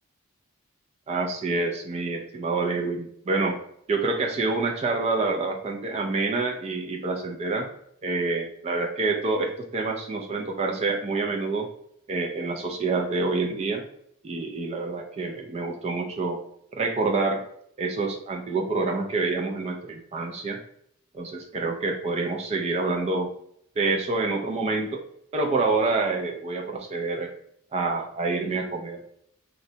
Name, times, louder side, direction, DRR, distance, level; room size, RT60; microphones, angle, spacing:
voice 1, 1.1-3.6 3.9-7.7 8.0-11.7 12.1-13.8 14.2-16.4 16.7-17.4 17.8-20.6 21.1-23.3 23.8-25.0 25.3-27.3 27.7-29.0, right 3 dB, 30° right, 2 dB, 0.3 m, -27 dB
3.9 x 2.1 x 2.6 m, 0.71 s
head